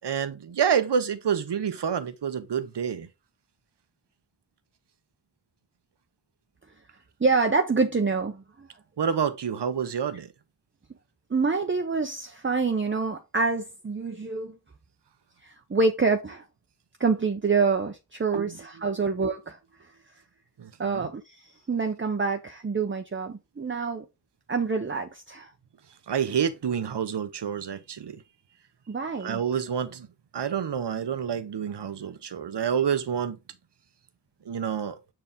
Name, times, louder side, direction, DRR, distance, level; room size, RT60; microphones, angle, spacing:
voice 1, 0.0-3.1 9.0-10.3 18.3-18.9 20.6-21.1 26.1-28.2 29.2-30.1 30.3-33.4 34.4-35.0, right 7 dB, 70° right, 1.0 m, -28 dB
voice 2, 7.2-8.7 11.3-14.6 15.4-16.4 17.0-19.6 20.8-24.1 24.5-25.5 28.9-29.4, right 4 dB, 30° right, 0.8 m, -26 dB
6.4 x 4.5 x 3.6 m
cardioid pair, 55°, 42 cm